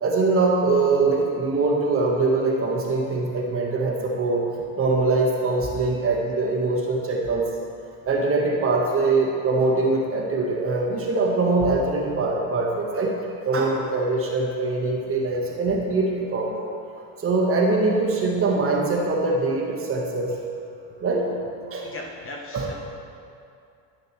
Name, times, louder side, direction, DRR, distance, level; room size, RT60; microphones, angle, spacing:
voice 1, 0.0-4.4 4.8-7.4 8.1-13.1 13.4-16.7 17.2-20.4 21.0-21.3 21.7-21.9 22.5-22.7, right 3 dB, 35° right, -2 dB, 1.5 m, -23 dB
voice 2, 21.8-22.7, left 2 dB, 35° left, 0 dB, 1.1 m, -37 dB
11.0 x 6.5 x 3.3 m, 2.5 s
cardioid pair, 120°, 39 cm